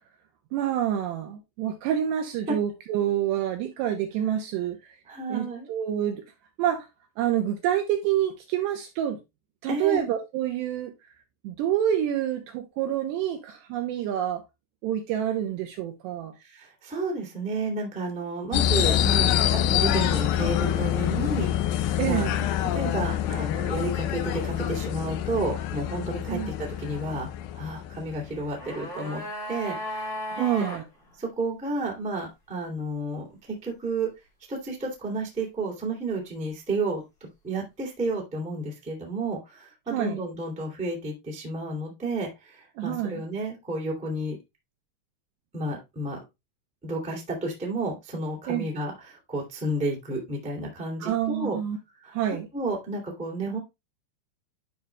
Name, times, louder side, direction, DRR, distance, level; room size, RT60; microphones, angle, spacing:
voice 1, 0.5-4.8 5.3-6.2 6.6-6.9 7.2-9.2 9.6-10.9 11.4-14.4 14.8-16.3 22.0-22.5 26.3-26.5 30.3-30.8 39.9-40.2 42.8-43.2 48.5-48.7 51.0-51.8 52.1-52.5, right 10 dB, 80° right, 2.6 m, -27 dB
voice 2, 5.1-5.7 9.7-10.0 16.4-22.3 22.7-27.3 27.5-29.2 29.5-30.7 31.2-34.1 34.5-37.0 37.4-44.4 45.5-46.2 46.8-51.6 52.0-52.1 52.5-53.6, right 2 dB, 5° right, 0.9 m, -31 dB
sound 1, 18.5-28.4, left 11 dB, 80° left, 2.5 m, -26 dB
sound 2, 28.2-30.8 31.1-31.2, equal, 45° left, 1.6 m, -35 dB
11.5 x 5.3 x 2.3 m
omnidirectional pair, 5.6 m